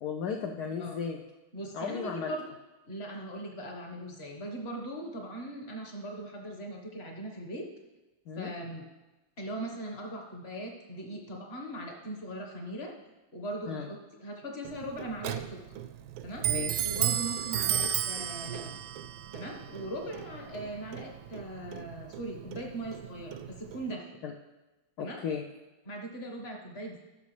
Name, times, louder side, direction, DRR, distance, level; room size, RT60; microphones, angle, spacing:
voice 1, 0.0-1.2 1.7-2.3 8.3-8.5 13.7-13.9 16.4-16.8 24.2-24.3 25.0-25.4, left 6 dB, 70° left, 2 dB, 1.0 m, -35 dB
voice 2, 1.5-2.4 2.9-7.7 8.4-8.8 9.4-12.9 13.3-15.6 16.2-16.5 16.8-18.8 19.3-24.2 25.0-25.2 25.8-27.0, right 1 dB, 35° left, 1 dB, 1.4 m, -40 dB
Clock, 14.6-23.9, right 10 dB, 80° right, 1.3 m, -34 dB
15.5 x 6.6 x 3.3 m, 1.1 s
omnidirectional pair, 2.2 m